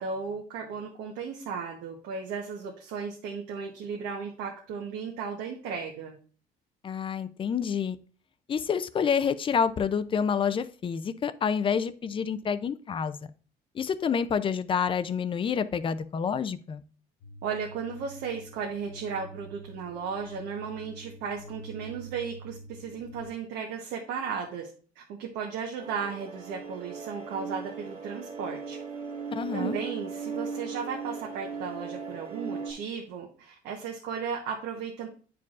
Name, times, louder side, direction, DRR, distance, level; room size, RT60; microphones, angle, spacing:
voice 1, 0.0-6.1 17.4-24.7 25.0-28.8 29.5-35.1, right 6 dB, 90° right, -1 dB, 1.0 m, -35 dB
voice 2, 6.8-8.0 8.5-13.2 13.7-16.8 29.3-29.8, left 7 dB, 30° left, 14 dB, 0.4 m, -28 dB
sound 1, 17.2-23.3, right 2 dB, 75° left, 0.8 m, -47 dB
sound 2, 25.8-32.7, right 5 dB, 50° right, 1.9 m, -37 dB
9.6 x 4.6 x 2.4 m, 0.41 s
cardioid pair, 110°, 17 cm